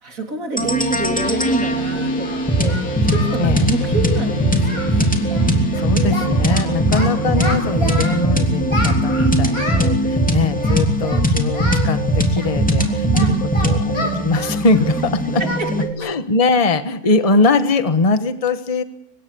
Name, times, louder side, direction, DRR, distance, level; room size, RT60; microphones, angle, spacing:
voice 1, 0.0-2.8 3.1-5.1 6.7-7.0 13.1-13.4 15.4-15.5, right 3 dB, 60° right, 4 dB, 4.0 m, -26 dB
sound 1, 0.6-15.9, right 1 dB, 5° left, 2.9 m, -19 dB
sound 2, 1.2-10.6, left 3 dB, 70° left, 1.9 m, -31 dB
Singing, 1.4-1.5 2.2-3.4 3.7-3.9 4.2-4.3 4.6-5.0 5.2-5.5 5.7-6.6 6.9-8.2 8.7-9.9 10.6-11.2 11.5-11.9 12.3-15.0 15.5-15.7 16.0-16.2 16.6-16.7 17.2-17.5, left 1 dB, 40° left, 6.1 m, -29 dB
voice 2, 3.4-3.7 5.8-13.3 13.6-15.4 16.0-18.8, left 3 dB, 25° left, 10 dB, 1.3 m, -21 dB
24.5 x 21.5 x 7.0 m, 0.70 s
omnidirectional pair, 1.6 m